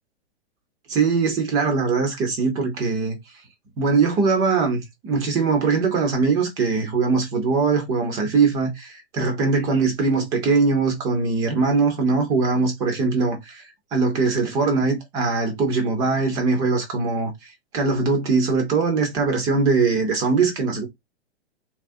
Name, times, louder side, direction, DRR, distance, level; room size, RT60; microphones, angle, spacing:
voice 1, 0.9-3.2 3.8-13.6 13.9-17.3 17.7-20.8, right 4 dB, 10° right, 0.4 m, -21 dB
3.5 x 2.8 x 2.6 m
hypercardioid pair, 155°, 34 cm